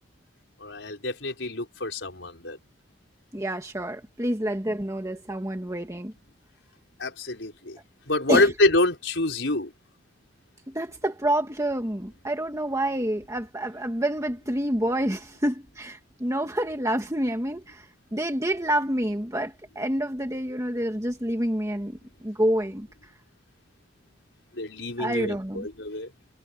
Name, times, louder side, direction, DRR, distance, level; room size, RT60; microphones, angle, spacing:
voice 1, 0.6-2.6 7.0-7.8 8.1-9.7 24.6-26.1, left 2 dB, 75° left, 5.0 m, -26 dB
voice 2, 3.3-6.1 8.3-8.5 10.7-17.9 18.1-22.9 25.0-25.7, right 1 dB, 15° right, 1.6 m, -28 dB
head